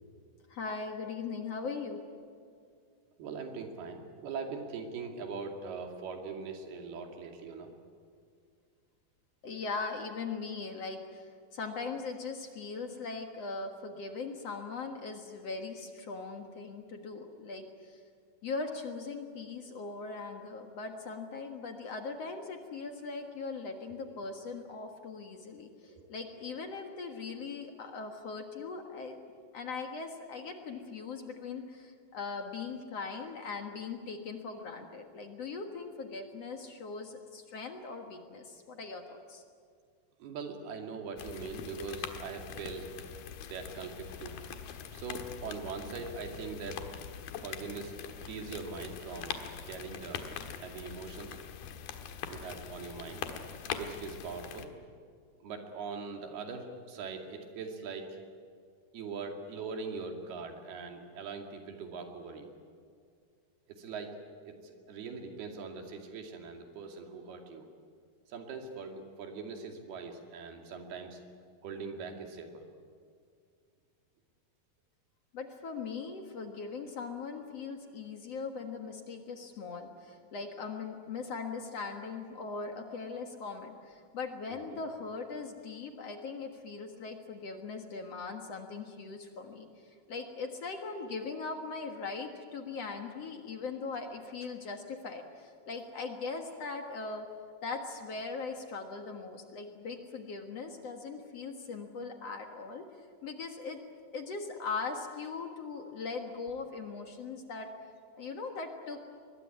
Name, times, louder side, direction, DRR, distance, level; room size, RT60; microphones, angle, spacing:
voice 1, 0.5-2.0 9.4-18.0 18.4-29.2 29.5-39.4 75.3-97.3 97.6-102.9 103.2-103.8 104.1-107.7 108.1-109.0, left 4 dB, 50° left, 4 dB, 2.2 m, -40 dB
voice 2, 3.2-7.7 23.9-24.0 25.8-26.1 40.2-42.9 43.5-44.4 44.9-46.8 47.4-48.0 48.3-49.4 49.6-50.2 50.6-51.4 52.3-53.2 53.8-54.7 55.4-58.2 58.9-62.5 63.7-64.2 64.5-67.7 68.3-71.2 71.6-72.6 84.5-84.8, right 4 dB, 90° right, 3 dB, 4.4 m, -41 dB
sound 1, 41.2-54.7, left 8 dB, 80° left, 3.3 m, -43 dB
23.5 x 21.0 x 9.8 m, 2.2 s
omnidirectional pair, 4.4 m